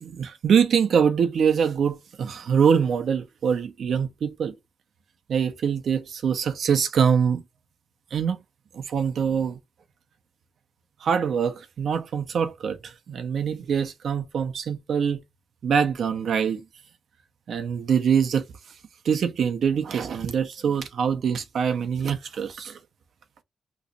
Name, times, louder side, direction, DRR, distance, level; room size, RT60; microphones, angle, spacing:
voice 1, 0.0-4.5 5.3-7.4 8.1-8.4 8.7-9.6 11.0-15.2 15.6-16.6 17.5-18.4 19.0-22.8, right 7 dB, 75° right, 0.7 m, -24 dB
3.1 x 2.5 x 4.0 m
cardioid pair, 80°, 0 cm